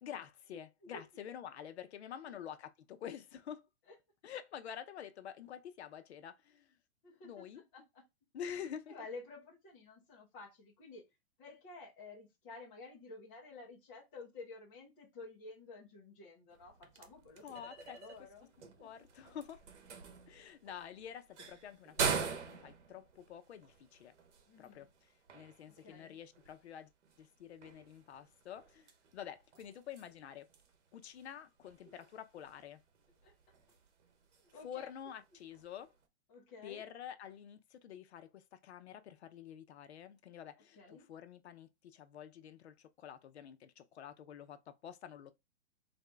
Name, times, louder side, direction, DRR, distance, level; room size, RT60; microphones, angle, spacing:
voice 1, 0.0-3.7 4.2-6.8 7.2-7.6 8.3-8.9 17.4-18.3 18.8-19.6 20.3-24.1 24.6-26.9 27.2-30.5 30.9-32.8 34.6-35.9 36.6-45.3, left 9 dB, 65° left, 0.7 m, -48 dB
voice 2, 7.0-8.0 8.9-11.0 11.4-18.5 18.8-19.0 24.5-24.9 25.7-26.2 33.2-33.3 34.4-34.9 36.3-36.8 40.8-41.1, left 3 dB, 10° left, 0.5 m, -52 dB
sound 1, 16.5-36.0, right 6 dB, 70° right, 1.1 m, -45 dB
4.0 x 2.7 x 3.4 m
hypercardioid pair, 175°, 36 cm